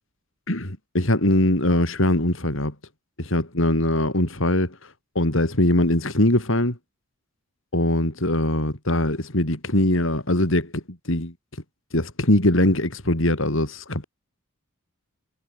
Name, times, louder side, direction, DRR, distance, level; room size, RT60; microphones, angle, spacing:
voice 1, 0.5-2.7 3.2-6.8 7.7-10.8 11.1-11.3 11.9-14.0, left 1 dB, 65° left, 4.1 m, -22 dB
head